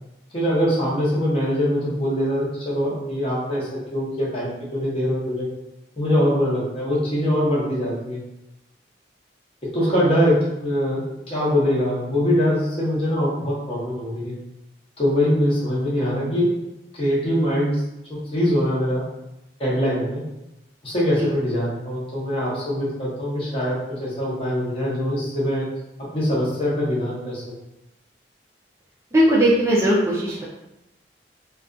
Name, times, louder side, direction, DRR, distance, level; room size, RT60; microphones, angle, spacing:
voice 1, 0.3-5.5 6.0-8.2 9.7-11.0 11.3-14.3 15.0-16.5 16.9-17.8 18.1-19.0 19.6-20.2 20.8-25.6 26.0-27.4, equal, 30° left, -6 dB, 0.8 m, -23 dB
voice 2, 29.1-30.4, right 1 dB, 15° right, -6 dB, 0.3 m, -19 dB
2.4 x 2.2 x 2.5 m, 0.90 s
head